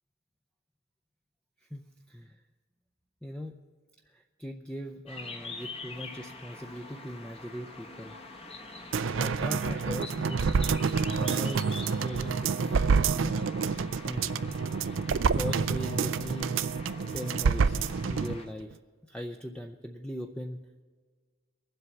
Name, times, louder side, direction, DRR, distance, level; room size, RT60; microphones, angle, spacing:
voice 1, 1.7-2.4 3.2-3.6 4.1-8.2 9.2-10.5 11.2-13.4 14.0-14.6 15.3-16.6 17.1-17.8 18.0-18.8 19.1-20.6, equal, 5° left, 2 dB, 0.5 m, -39 dB
sound 1, 5.1-18.5, left 3 dB, 30° left, 1.1 m, -45 dB
sound 2, 8.9-18.4 18.7-18.8, right 5 dB, 60° right, 0.4 m, -28 dB
23.0 x 7.9 x 5.8 m, 1.6 s
head